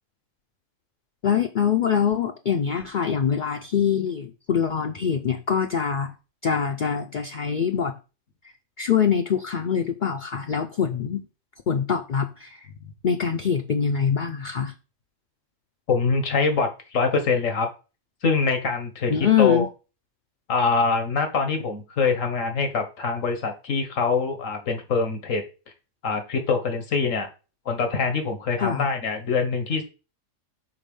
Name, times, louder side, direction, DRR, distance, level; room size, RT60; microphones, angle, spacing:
voice 1, 1.2-6.1 6.4-7.9 8.8-11.3 11.7-12.7 13.0-14.7 19.1-19.7 28.6-28.9, left 7 dB, 50° left, 0.6 m, -24 dB
voice 2, 15.9-17.7 18.2-19.7 20.5-25.4 26.0-27.3 27.6-29.8, left 4 dB, 90° left, 1.7 m, -24 dB
5.9 x 4.0 x 5.3 m
omnidirectional pair, 1.3 m